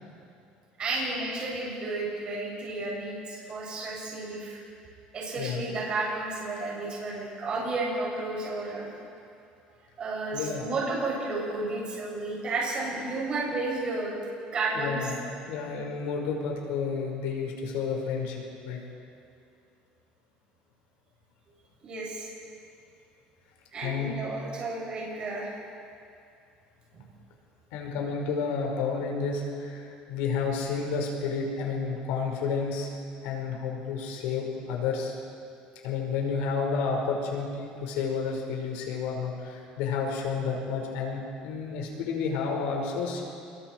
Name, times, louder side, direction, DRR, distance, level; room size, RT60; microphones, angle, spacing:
voice 1, 0.8-4.6 5.1-8.9 10.0-14.2 14.5-15.1 21.8-22.3 23.7-25.6 26.9-27.0, right 2 dB, 35° right, -4 dB, 7.1 m, -32 dB
voice 2, 10.3-10.7 14.7-18.8 23.8-24.1 27.7-32.9 33.2-35.2 35.8-43.2, left 5 dB, 90° left, 0 dB, 5.2 m, -31 dB
27.5 x 22.0 x 4.7 m, 2.5 s
cardioid pair, 140°, 3 cm